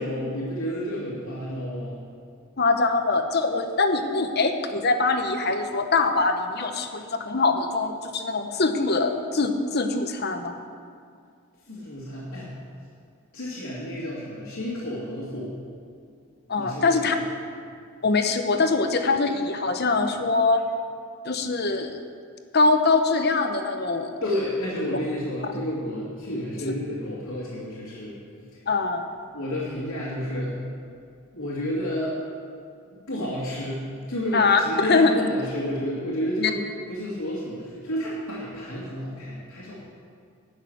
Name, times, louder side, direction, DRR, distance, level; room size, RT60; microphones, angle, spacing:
voice 1, 0.0-2.0 11.7-12.5 13.3-15.6 16.6-17.2 24.2-28.2 28.5-28.6 29.3-30.6 31.3-32.2 33.1-36.6 36.9-39.7, left 1 dB, 80° left, -8 dB, 2.6 m, -31 dB
voice 2, 2.6-10.6 16.5-17.2 18.0-20.6 21.2-21.9 22.5-24.1 26.6-26.7 28.7-29.1 34.3-34.6 34.9-35.1, left 3 dB, 50° left, 6 dB, 0.9 m, -23 dB
12.0 x 6.6 x 9.3 m, 2.2 s
head